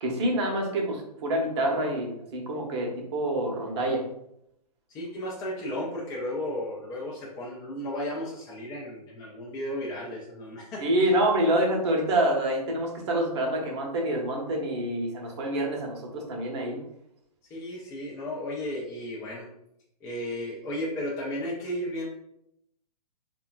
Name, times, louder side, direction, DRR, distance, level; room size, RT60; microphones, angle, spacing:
voice 1, 0.0-4.0 10.8-16.8, right 1 dB, 40° right, 0 dB, 0.8 m, -27 dB
voice 2, 4.9-10.8 17.5-19.5 20.0-22.0, left 1 dB, 15° left, -5 dB, 0.5 m, -34 dB
3.6 x 2.2 x 2.3 m, 0.78 s
figure-of-eight pair, 120°, 21 cm